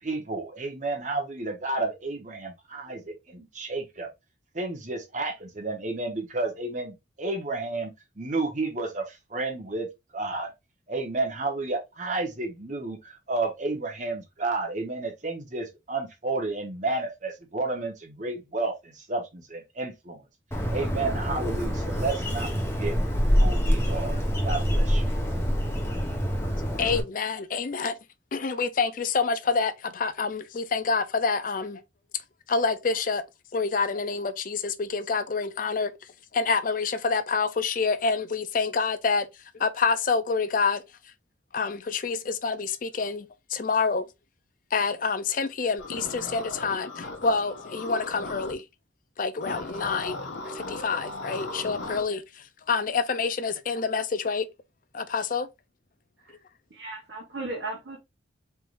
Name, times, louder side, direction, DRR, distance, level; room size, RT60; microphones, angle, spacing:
voice 1, 0.0-4.1 4.5-7.9 8.2-9.9 10.1-10.5 10.9-20.2 20.7-23.0 23.3-25.0, right 3 dB, 40° right, 1.0 m, -31 dB
Bird, 20.5-27.0, equal, 15° left, 1.0 m, -26 dB
voice 2, 26.7-27.9 28.3-31.8 32.5-33.2 33.5-35.9 36.3-39.3 39.6-40.8 41.5-44.1 44.7-48.6 49.2-50.2 50.4-52.2 52.7-54.5 54.9-55.5, left 4 dB, 45° left, 0.5 m, -27 dB
sound 1, 45.8-48.5 49.4-52.0, left 2 dB, 75° left, 1.0 m, -37 dB
voice 3, 56.7-58.0, right 2 dB, 65° right, 1.1 m, -36 dB
4.6 x 3.5 x 2.5 m
head